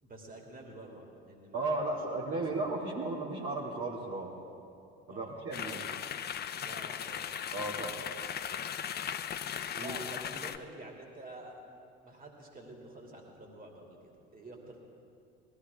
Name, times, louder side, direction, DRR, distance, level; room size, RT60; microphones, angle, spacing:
voice 1, 0.0-2.4 5.1-5.3 6.6-7.4 9.8-11.8 12.0-14.8, right 1 dB, 25° right, 0 dB, 3.0 m, -49 dB
voice 2, 1.5-4.3 5.1-5.9 7.5-8.0 9.8-10.0, right 2 dB, 45° right, -5 dB, 2.5 m, -35 dB
sound 1, 5.5-10.6, left 9 dB, 30° left, 0.6 m, -38 dB
20.5 x 15.0 x 3.6 m, 2.5 s
hypercardioid pair, 65°, 32 cm